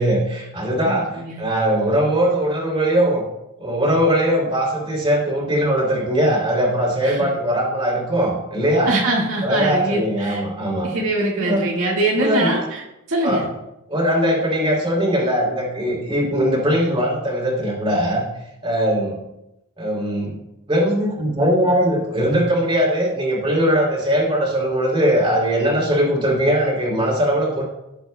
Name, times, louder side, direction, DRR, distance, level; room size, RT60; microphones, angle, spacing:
voice 1, 0.0-3.2 3.6-8.9 9.4-10.9 11.3-11.7 12.2-12.5 13.2-13.4 13.9-18.2 18.6-19.2 19.8-20.3 20.7-27.6, equal, 25° right, -3 dB, 3.1 m, -20 dB
voice 2, 0.8-1.4 7.0-7.3 8.9-10.4 10.8-12.8 13.1-13.5, right 2 dB, 65° right, -4 dB, 1.9 m, -23 dB
17.0 x 7.7 x 2.3 m, 0.91 s
head